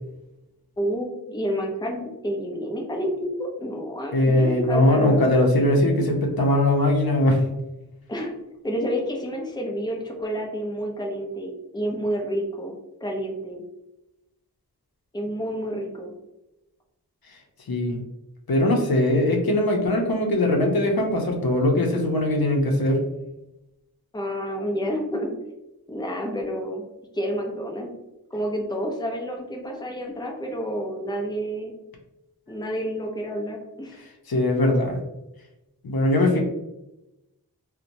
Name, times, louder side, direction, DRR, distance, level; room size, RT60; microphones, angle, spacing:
voice 1, 0.8-5.3 8.1-8.3 8.6-13.6 15.1-16.1 24.1-25.4 25.9-26.8 27.1-27.9 28.3-31.7 32.5-34.0, equal, 10° left, 0 dB, 0.5 m, -29 dB
voice 2, 4.1-7.4 17.7-18.0 18.5-23.0 34.3-35.0 35.8-36.4, left 1 dB, 70° left, 1 dB, 0.6 m, -20 dB
2.8 x 2.1 x 2.5 m, 0.94 s
wide cardioid pair, 40°, 38 cm